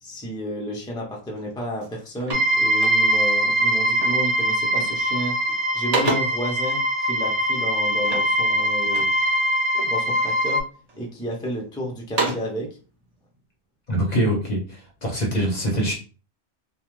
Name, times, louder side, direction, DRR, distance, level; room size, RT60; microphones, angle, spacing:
voice 1, 0.0-5.4 5.7-9.2 9.8-10.6 11.0-12.7, equal, 5° left, -2 dB, 0.4 m, -31 dB
sound 1, 1.4-1.5 1.8-3.4 4.0-4.3 4.6-5.1 5.5-6.5 8.0-9.2 9.7-10.4 10.9-11.6 11.9-12.6, right 2 dB, 40° right, 0.8 m, -30 dB
sound 2, 2.3-10.6, right 1 dB, 75° right, 0.9 m, -22 dB
voice 2, 13.9-15.9, right 1 dB, 45° left, -1 dB, 0.7 m, -24 dB
2.3 x 2.3 x 3.0 m, 0.36 s
omnidirectional pair, 1.2 m